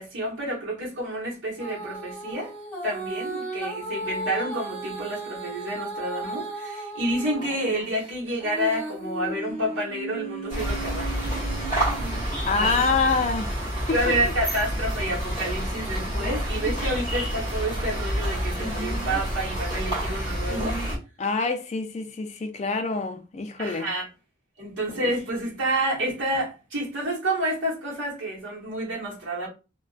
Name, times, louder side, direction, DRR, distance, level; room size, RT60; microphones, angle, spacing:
voice 1, 0.0-2.5 2.8-11.1 12.5-12.7 13.9-20.8 23.6-24.1 24.6-29.5, right 1 dB, 70° right, 1.0 m, -29 dB
Female singing, 1.6-7.5 7.9-12.2 12.8-12.9, right 2 dB, 10° left, 1.0 m, -35 dB
sound 1, 10.5-21.0, equal, 20° right, 1.1 m, -28 dB
voice 2, 12.5-13.5 13.9-14.1 21.2-23.9 24.9-25.1, left 4 dB, 35° left, 0.3 m, -26 dB
2.5 x 2.1 x 2.3 m
head